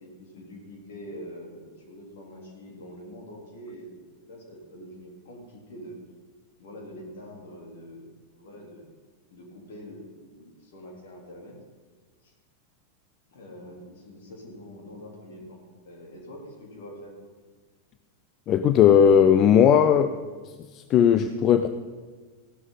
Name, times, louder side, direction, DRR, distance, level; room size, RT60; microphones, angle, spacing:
voice 1, 0.0-6.0 6.6-8.9 9.3-11.6 12.2-12.3 13.3-17.2, equal, 55° left, -1 dB, 3.7 m, -44 dB
voice 2, 18.5-20.1 20.7-21.7, left 8 dB, 35° left, 11 dB, 0.5 m, -17 dB
16.0 x 12.0 x 4.1 m, 1.4 s
figure-of-eight pair, 90°, 0 cm